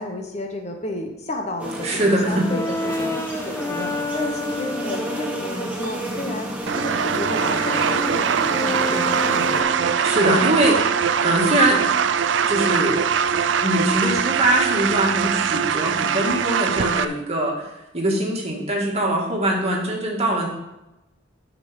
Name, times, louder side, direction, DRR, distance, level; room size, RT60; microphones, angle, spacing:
voice 1, 0.0-3.1 3.4-6.5 6.7-9.7, left 1 dB, 35° left, 4 dB, 1.0 m, -32 dB
Brass instrument, 1.6-5.6 6.1-10.2, left 2 dB, 15° left, 0.5 m, -30 dB
sound 1, 1.6-9.6, right 1 dB, 10° right, 1.4 m, -32 dB
voice 2, 1.8-2.5 10.0-11.8 12.5-13.0 13.6-20.5, right 1 dB, 35° right, -2 dB, 2.2 m, -22 dB
sound 2, 6.7-17.1, right 7 dB, 70° right, 0.4 m, -22 dB
10.5 x 6.1 x 5.2 m, 0.95 s
head